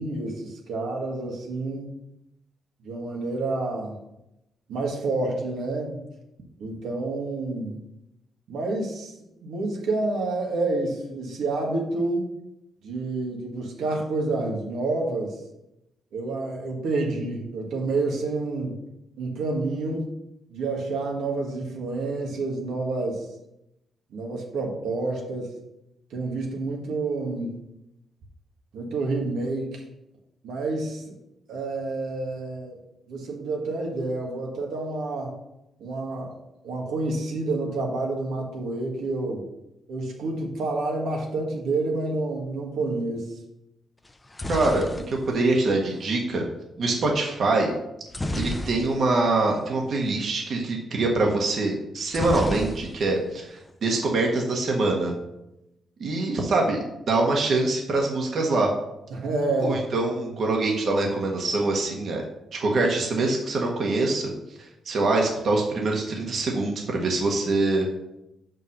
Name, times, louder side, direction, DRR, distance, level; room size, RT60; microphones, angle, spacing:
voice 1, 0.0-1.9 2.8-4.0 4.7-6.0 6.6-7.8 8.5-9.1 9.4-12.3 12.8-15.4 16.1-18.8 19.2-20.1 20.5-23.3 24.1-25.5 26.1-27.6 28.7-29.8 30.4-31.2 31.5-32.8 33.1-35.4 35.8-36.4 36.6-39.5 39.9-43.3 59.1-60.1, right 2 dB, 85° right, 0 dB, 1.6 m, -28 dB
sound 1, 44.1-46.2 48.1-49.3 49.6-49.7 49.9-50.2 52.1-53.3 53.6-54.2, left 1 dB, 15° left, 0.6 m, -32 dB
voice 2, 44.5-46.4 46.8-47.7 48.3-55.1 56.0-56.8 57.1-58.7 59.6-62.2 62.5-64.3 64.8-67.9, right 2 dB, 55° right, 0 dB, 1.4 m, -24 dB
5.7 x 5.3 x 6.4 m, 0.88 s
cardioid pair, 125°, 0 cm